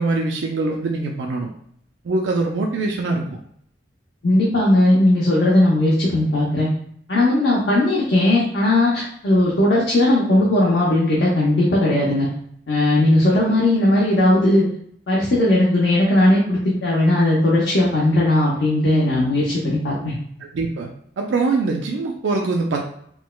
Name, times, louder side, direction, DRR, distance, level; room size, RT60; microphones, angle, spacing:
voice 1, 0.0-1.5 2.0-3.4 20.5-20.9 21.2-22.8, right 3 dB, 85° right, 0 dB, 0.4 m, -23 dB
voice 2, 4.2-6.7 7.1-12.3 12.7-14.7 15.1-20.1, left 1 dB, 65° left, -5 dB, 0.7 m, -17 dB
4.6 x 2.1 x 2.2 m, 0.66 s
head